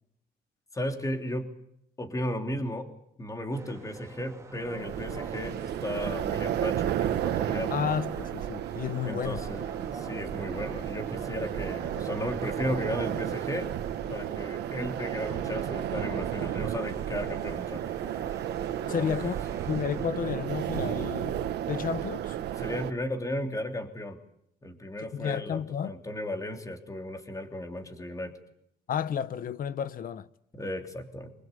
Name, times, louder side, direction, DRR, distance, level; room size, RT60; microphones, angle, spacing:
voice 1, 0.7-1.5 2.0-2.9 3.2-7.8 9.0-13.7 14.1-17.9 18.8-19.3 22.6-24.2 24.6-28.3 30.5-31.3, left 1 dB, 20° left, 3.2 m, -35 dB
sound 1, 3.5-20.1, right 3 dB, 15° right, 3.1 m, -46 dB
sound 2, 4.6-22.9, right 11 dB, 85° right, 1.7 m, -33 dB
voice 2, 7.7-9.4 18.9-19.3 19.7-22.4 25.1-26.0 28.9-30.3, left 8 dB, 55° left, 1.1 m, -32 dB
25.0 x 21.5 x 8.3 m
cardioid pair, 115°, 17 cm